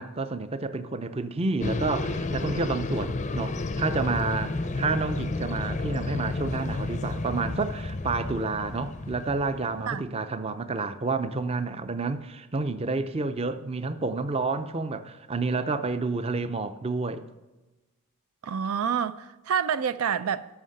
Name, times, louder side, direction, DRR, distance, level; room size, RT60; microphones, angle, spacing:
voice 1, 0.0-17.3, right 3 dB, 25° right, 0.5 m, -29 dB
sound 1, 1.6-9.9, left 2 dB, 35° left, 0.5 m, -31 dB
voice 2, 18.4-20.5, right 7 dB, 85° right, 0.4 m, -28 dB
13.0 x 5.8 x 6.6 m
head